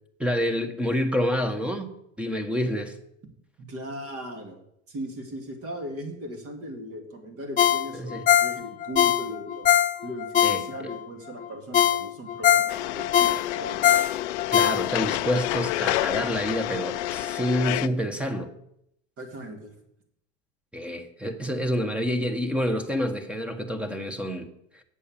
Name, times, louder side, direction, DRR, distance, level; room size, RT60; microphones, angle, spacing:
voice 1, 0.2-3.0 8.0-8.2 10.4-10.6 14.5-18.5 20.7-24.8, equal, 5° right, 1.1 m, -28 dB
voice 2, 3.6-4.6 4.9-9.7 10.0-13.9 19.2-19.7, equal, 45° right, 2.5 m, -38 dB
Ringtone, 7.6-11.0 11.4-11.5 11.7-15.2 15.6-15.7, left 11 dB, 25° left, 0.4 m, -22 dB
sound 1, 12.7-17.9, left 16 dB, 80° left, 0.5 m, -29 dB
8.2 x 7.1 x 7.3 m
supercardioid pair, 105°, 34 cm